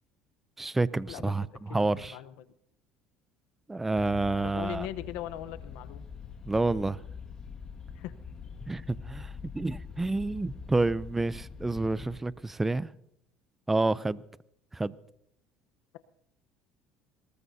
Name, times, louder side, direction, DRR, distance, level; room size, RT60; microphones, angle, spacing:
voice 1, 0.6-2.2 3.7-4.9 6.5-7.0 8.7-12.9 13.7-14.2 14.7-14.9, right 2 dB, 10° right, 0.5 m, -29 dB
voice 2, 1.7-2.5 4.4-6.0 7.9-8.1, left 13 dB, 80° left, 1.0 m, -40 dB
sound 1, 4.0-12.2, left 6 dB, 30° left, 1.9 m, -44 dB
25.0 x 20.0 x 2.8 m
cardioid pair, 120°, 2 cm